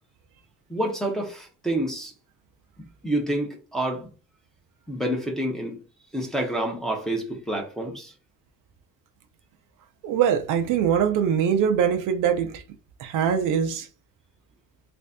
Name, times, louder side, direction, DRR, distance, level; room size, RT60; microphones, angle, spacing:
voice 1, 0.7-2.1 2.8-4.1 4.9-5.8 6.1-8.1, right 1 dB, ahead, 0.7 m, -28 dB
voice 2, 10.0-12.6 13.0-13.9, right 8 dB, 70° right, 0.7 m, -22 dB
3.3 x 2.6 x 3.5 m
cardioid pair, 160°, 32 cm